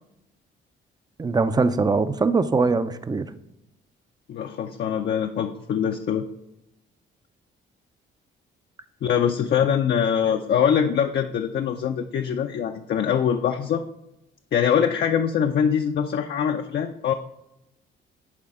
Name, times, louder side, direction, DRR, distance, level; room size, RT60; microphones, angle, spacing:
voice 1, 1.2-3.3, right 4 dB, 20° right, 12 dB, 0.5 m, -22 dB
voice 2, 4.3-6.2 9.0-13.8 14.5-17.1, left 8 dB, 55° left, 4 dB, 0.5 m, -23 dB
11.0 x 4.2 x 3.6 m, 0.86 s
cardioid pair, 90°, 20 cm